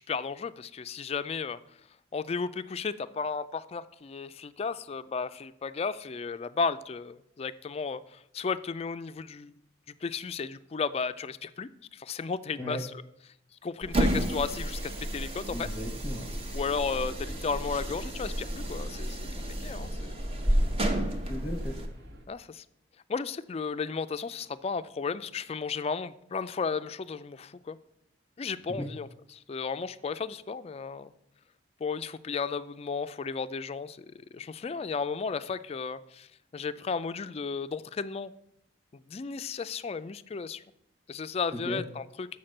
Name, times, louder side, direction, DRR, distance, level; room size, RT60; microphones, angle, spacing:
voice 1, 0.0-1.6 2.1-9.5 10.0-12.8 13.6-15.7 16.5-19.9 22.3-22.6 23.1-27.8 28.4-31.1 31.8-34.1 34.3-38.3 39.1-40.6 41.1-42.3, left 5 dB, 30° left, 14 dB, 0.3 m, -34 dB
sound 1, 13.8-21.9, right 1 dB, 30° right, 0.9 m, -31 dB
voice 2, 15.5-16.3 21.3-21.8 28.7-28.9 41.5-41.8, equal, 5° left, 5 dB, 1.0 m, -36 dB
sound 2, 17.0-22.3, equal, 60° right, 1.1 m, -48 dB
7.1 x 5.9 x 6.4 m, 0.79 s
head